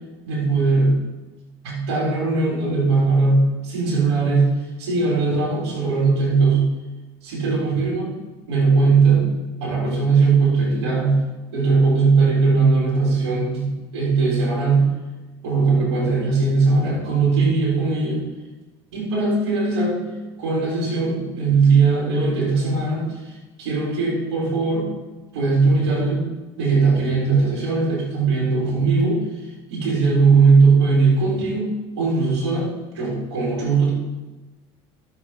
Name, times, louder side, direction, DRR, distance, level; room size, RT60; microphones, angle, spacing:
voice 1, 0.2-1.0 1.6-4.5 4.8-6.6 7.2-8.1 8.5-9.3 9.6-11.2 11.5-14.9 15.4-18.2 18.9-20.0 20.4-24.9 25.3-26.2 26.6-29.2 29.7-32.7 32.9-33.9, right 4 dB, 85° right, -4 dB, 3.8 m, -19 dB
12.5 x 7.0 x 4.6 m, 1.2 s
supercardioid pair, 95°, 14 cm